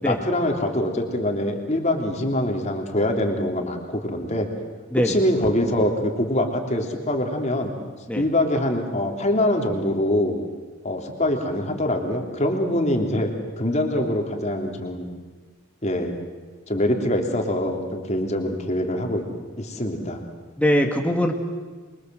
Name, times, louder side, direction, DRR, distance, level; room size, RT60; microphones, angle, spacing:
voice 1, 0.0-4.5 5.0-7.7 8.1-10.4 10.8-15.1 15.8-16.1 16.7-19.3 19.6-20.2, left 1 dB, 35° left, 3 dB, 3.3 m, -24 dB
voice 2, 20.6-21.3, equal, 5° left, 3 dB, 2.2 m, -21 dB
28.0 x 23.5 x 7.9 m, 1.4 s
head